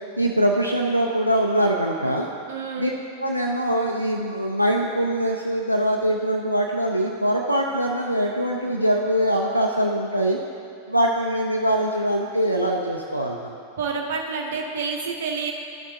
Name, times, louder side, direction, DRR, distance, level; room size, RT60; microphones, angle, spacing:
voice 1, 0.2-2.3 2.8-2.9 3.2-10.4 10.9-13.6, right 1 dB, 90° right, 0 dB, 0.4 m, -23 dB
voice 2, 2.5-2.9 13.8-15.5, right 5 dB, 60° right, 2 dB, 0.9 m, -28 dB
12.5 x 5.9 x 2.7 m, 2.5 s
figure-of-eight pair, 90°, 0 cm